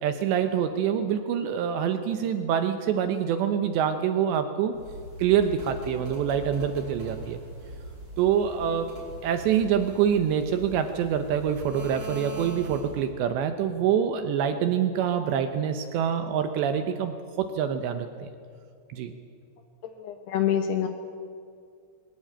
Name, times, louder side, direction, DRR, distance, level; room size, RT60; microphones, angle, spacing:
voice 1, 0.0-4.7 5.2-7.4 8.2-8.9 9.2-18.3 18.9-19.1, right 8 dB, 75° right, 8 dB, 2.7 m, -26 dB
sound 1, 4.7-13.1, right 1 dB, 30° right, 5.4 m, -41 dB
voice 2, 20.0-20.9, left 9 dB, 70° left, 6 dB, 2.7 m, -26 dB
21.5 x 19.0 x 8.7 m, 2.3 s
omnidirectional pair, 5.8 m